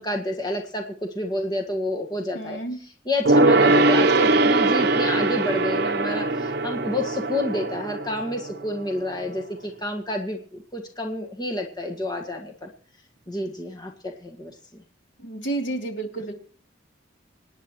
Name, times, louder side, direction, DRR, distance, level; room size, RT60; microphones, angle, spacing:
voice 1, 0.0-12.7 13.3-14.5, left 1 dB, 20° left, 2 dB, 1.8 m, -29 dB
voice 2, 2.3-2.8 15.2-16.3, right 2 dB, 80° left, 2 dB, 3.2 m, -30 dB
Gong, 3.2-9.1 9.4-9.5, right 2 dB, 55° right, 0.8 m, -21 dB
26.0 x 9.9 x 3.1 m, 0.42 s
head